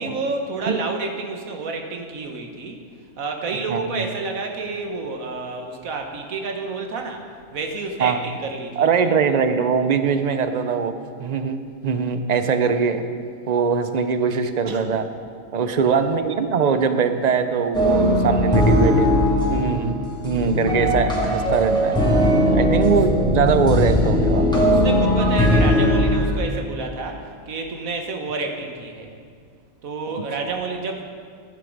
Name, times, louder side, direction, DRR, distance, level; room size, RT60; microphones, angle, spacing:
voice 1, 0.0-2.8 3.2-7.2 7.5-9.1 14.7-14.8 15.6-16.0 19.5-19.7 24.4-29.1 29.8-31.0, right 3 dB, 75° right, 3 dB, 1.6 m, -30 dB
voice 2, 3.7-4.1 8.0-8.2 8.8-10.9 11.2-13.1 13.5-15.1 15.5-19.1 19.5-22.1 22.5-24.5, right 5 dB, 50° right, 8 dB, 0.5 m, -21 dB
sound 1, 17.7-26.3, equal, 5° left, 2.4 m, -19 dB
11.0 x 10.5 x 5.3 m, 2.2 s
omnidirectional pair, 1.5 m